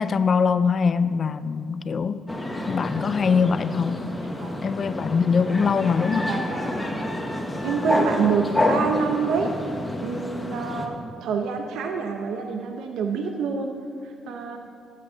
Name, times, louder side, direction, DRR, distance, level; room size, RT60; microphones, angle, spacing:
voice 1, 0.0-2.3 2.7-4.1 4.6-6.3, left 5 dB, 45° left, 13 dB, 0.4 m, -22 dB
sound 1, 2.3-10.9, left 1 dB, 10° left, 1.2 m, -28 dB
voice 2, 6.2-6.9 7.6-9.5 10.0-10.9 11.2-13.7 14.0-14.6, right 5 dB, 80° right, 4 dB, 0.7 m, -27 dB
12.5 x 8.5 x 3.9 m, 2.3 s
cardioid pair, 90°, 0 cm